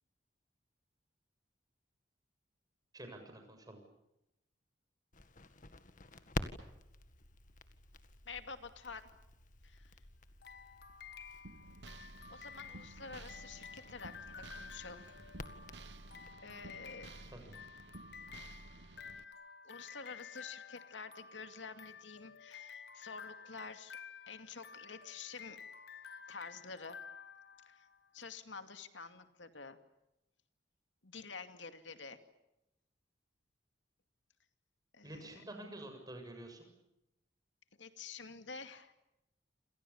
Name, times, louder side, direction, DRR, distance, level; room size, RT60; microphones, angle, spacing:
voice 1, 2.9-3.8 17.3-17.6 35.0-36.7, right 1 dB, 20° right, 5 dB, 7.3 m, -49 dB
Crackle, 5.1-16.3, left 2 dB, 45° left, 1.9 m, -49 dB
voice 2, 8.3-9.1 9.6-10.0 12.3-15.2 16.4-17.1 19.6-24.0 24.3-25.6 26.3-27.0 27.7-27.9 28.1-29.8 31.0-32.2 34.9-35.4 37.8-38.9, left 4 dB, 85° left, 8 dB, 2.4 m, -49 dB
sound 1, 10.4-28.1, left 6 dB, 60° left, 1.5 m, -52 dB
sound 2, 11.4-19.2, right 2 dB, 65° right, 1.1 m, -54 dB
28.0 x 28.0 x 7.2 m, 0.88 s
head